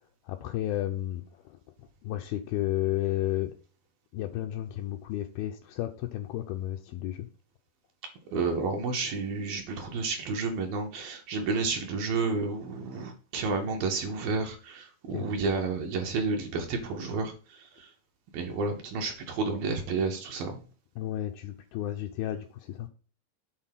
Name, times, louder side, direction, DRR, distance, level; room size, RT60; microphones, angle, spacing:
voice 1, 0.2-3.6 4.1-7.3 15.1-15.3 21.0-22.9, left 13 dB, 85° left, 4 dB, 2.1 m, -32 dB
voice 2, 8.3-17.9 18.3-20.6, right 4 dB, 70° right, 2 dB, 2.4 m, -31 dB
7.9 x 4.0 x 5.8 m, 0.39 s
omnidirectional pair, 5.0 m